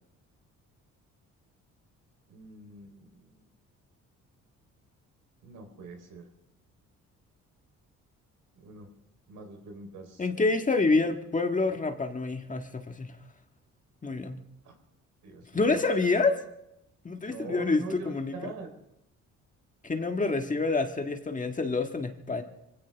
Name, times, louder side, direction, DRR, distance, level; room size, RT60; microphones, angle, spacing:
voice 1, 2.3-3.1 3.3-3.4 5.4-6.2 8.6-8.9 9.3-10.2 15.2-15.7 17.2-18.7, right 3 dB, 80° right, 3 dB, 4.1 m, -43 dB
voice 2, 10.2-13.2 14.0-14.4 15.5-16.4 17.0-18.5 19.8-22.4, left 3 dB, 25° left, 5 dB, 1.7 m, -27 dB
24.0 x 16.5 x 3.5 m, 0.84 s
cardioid pair, 90°, 30 cm